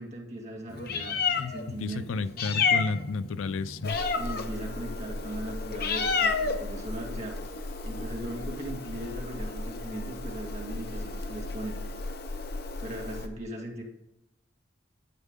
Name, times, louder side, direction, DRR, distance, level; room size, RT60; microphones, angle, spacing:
voice 1, 0.0-1.2 1.5-2.3 4.2-7.4 7.8-11.8 12.8-13.8, right 1 dB, 35° right, 0 dB, 1.9 m, -38 dB
Meow, 0.7-13.3, left 4 dB, 50° left, 0.8 m, -32 dB
voice 2, 1.4-4.0, left 4 dB, 80° left, 15 dB, 0.5 m, -32 dB
9.9 x 8.2 x 3.7 m, 0.92 s
head